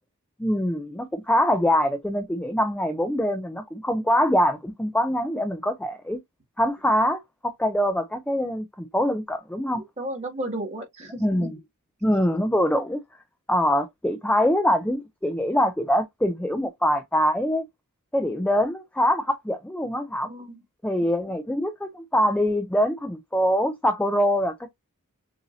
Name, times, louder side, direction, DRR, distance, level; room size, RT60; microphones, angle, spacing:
voice 1, 0.4-6.2 6.6-9.8 11.2-11.6 12.0-13.0 13.5-17.6 18.1-20.3 20.8-24.7, equal, 5° left, 0.5 m, -24 dB
voice 2, 9.8-11.5 20.2-20.6 21.3-21.4, right 1 dB, 30° right, 2.1 m, -34 dB
6.9 x 2.7 x 2.7 m
head